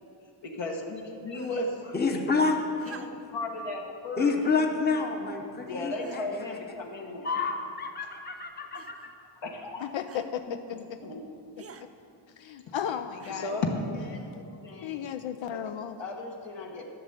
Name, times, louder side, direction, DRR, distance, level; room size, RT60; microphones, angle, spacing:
voice 1, 0.4-2.2 2.9-4.4 5.6-7.3 9.4-9.9 10.2-11.2 12.7-12.8 13.3-14.2 14.6-15.1 15.5-15.6 16.0-16.8, left 2 dB, 70° left, 0 dB, 1.5 m, -35 dB
sound 1, 1.3-1.8 2.8-3.4 4.4-4.7 5.4-5.5 6.0-6.4 7.3-7.8 8.7-9.1 10.1-10.3 11.6-11.9 13.2-13.6 14.7-14.8, right 5 dB, 30° right, 0.6 m, -49 dB
voice 2, 1.9-2.6 4.2-6.4 7.2-9.1, left 4 dB, 20° left, 3 dB, 0.9 m, -28 dB
voice 3, 9.8-10.4 12.4-13.6 14.8-16.0, left 9 dB, 85° left, 8 dB, 0.6 m, -34 dB
12.5 x 6.7 x 8.6 m, 2.5 s
wide cardioid pair, 155°, 45 cm